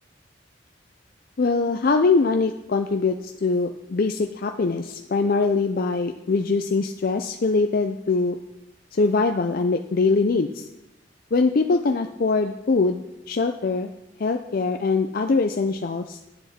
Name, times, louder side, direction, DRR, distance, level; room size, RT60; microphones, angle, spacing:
voice 1, 1.4-8.4 9.0-10.5 11.3-13.9 14.2-16.2, left 4 dB, 50° left, 5 dB, 0.5 m, -22 dB
9.9 x 8.0 x 4.2 m, 0.94 s
head